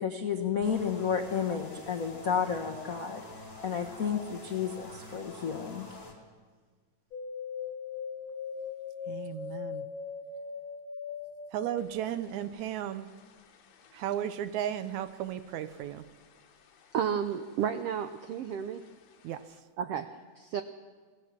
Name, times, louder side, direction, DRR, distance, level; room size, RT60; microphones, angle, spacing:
voice 1, 0.0-3.2 3.6-6.0, left 7 dB, 90° left, 0.7 m, -31 dB
sound 1, 0.6-6.1, left 2 dB, 10° left, 3.3 m, -47 dB
sound 2, 7.1-16.5 16.8-17.7 18.0-18.9 19.3-19.4, left 6 dB, 60° left, 2.3 m, -41 dB
voice 2, 9.1-9.8 11.5-13.1 13.9-16.0 19.2-19.4, right 10 dB, 75° right, 2.0 m, -34 dB
voice 3, 16.9-18.8 19.8-20.6, right 8 dB, 90° right, 1.3 m, -32 dB
26.5 x 17.5 x 7.4 m
omnidirectional pair, 3.7 m